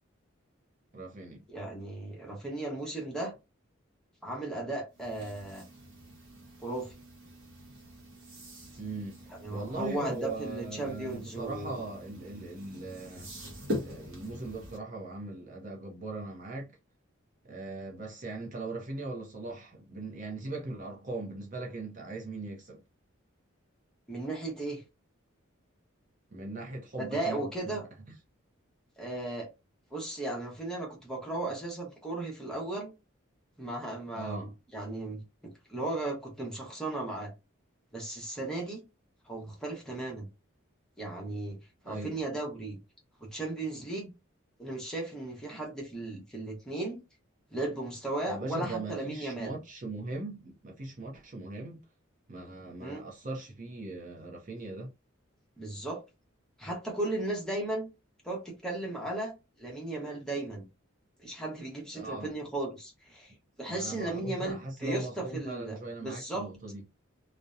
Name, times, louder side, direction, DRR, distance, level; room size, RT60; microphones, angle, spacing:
voice 1, 0.9-1.4 8.8-9.2 9.5-13.3 13.8-16.7 17.5-22.8 26.3-27.8 34.1-34.5 41.8-42.2 48.3-51.8 52.3-54.9 61.9-62.3 63.7-66.8, right 2 dB, 40° right, 0.6 m, -39 dB
voice 2, 1.5-3.3 4.2-5.6 6.6-6.9 9.4-11.8 24.1-24.8 27.0-27.8 29.0-29.5 29.9-32.9 33.6-37.3 37.9-38.8 39.3-40.3 41.0-41.6 41.8-42.8 43.2-44.1 44.6-47.0 47.5-49.6 52.8-53.0 55.6-56.0 56.6-57.9 58.2-59.3 59.6-60.7 61.2-66.5, right 2 dB, 5° left, 0.7 m, -36 dB
sound 1, 4.9-14.8, left 1 dB, 80° right, 0.9 m, -43 dB
2.6 x 2.0 x 2.3 m
head